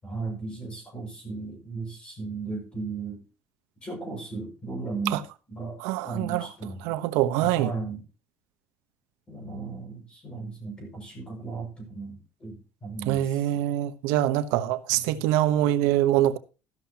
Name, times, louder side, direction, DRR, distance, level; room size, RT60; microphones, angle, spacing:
voice 1, 0.0-3.2 3.8-5.2 5.5-5.8 6.0-6.9 7.4-8.0 9.3-13.6 14.9-15.2, right 4 dB, 20° left, 5.8 m, -36 dB
voice 2, 5.8-6.5 6.8-7.7 13.1-16.4, right 13 dB, 85° right, 0.9 m, -24 dB
13.5 x 12.0 x 2.9 m
cardioid pair, 175°, 5 cm